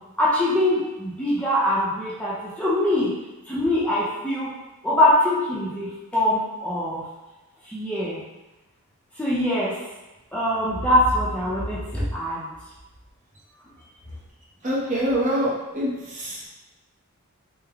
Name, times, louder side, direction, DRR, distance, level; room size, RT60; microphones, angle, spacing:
voice 1, 0.2-3.1 3.5-4.5 4.8-7.0 7.7-8.2 9.2-9.7 10.3-12.4, left 1 dB, 5° left, -8 dB, 0.5 m, -23 dB
voice 2, 14.6-16.5, equal, 35° right, -5 dB, 0.7 m, -25 dB
3.2 x 2.1 x 3.4 m, 1.1 s
head